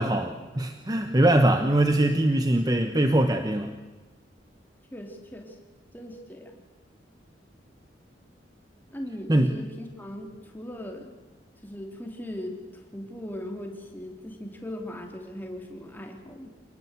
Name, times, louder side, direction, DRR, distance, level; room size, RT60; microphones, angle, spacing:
voice 1, 0.0-3.7 9.3-9.5, right 1 dB, 20° right, 6 dB, 1.1 m, -22 dB
voice 2, 4.9-5.6 5.9-6.6 8.9-11.2 11.6-16.5, left 1 dB, 10° left, 2 dB, 3.2 m, -39 dB
27.0 x 19.5 x 8.2 m, 1.3 s
head